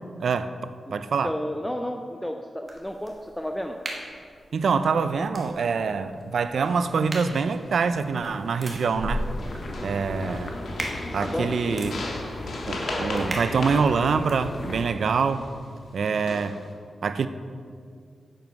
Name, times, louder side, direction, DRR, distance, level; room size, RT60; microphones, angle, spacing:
voice 1, 0.2-1.3 4.5-9.3 9.8-10.6 11.1-11.9 12.7-15.5 15.9-16.6 17.0-17.3, right 5 dB, 65° right, 11 dB, 0.4 m, -25 dB
voice 2, 1.2-3.8 11.2-11.5, equal, 5° left, 4 dB, 0.4 m, -31 dB
sound 1, 2.6-14.4, right 1 dB, 25° right, 1.3 m, -39 dB
sound 2, 6.6-7.0 7.4-8.0 8.6-9.1 9.4-15.5 16.0-16.7, left 2 dB, 70° left, 1.5 m, -37 dB
sound 3, 9.1-14.9, left 2 dB, 35° left, 0.8 m, -36 dB
10.5 x 7.8 x 4.7 m, 2.2 s
wide cardioid pair, 175°, 0 cm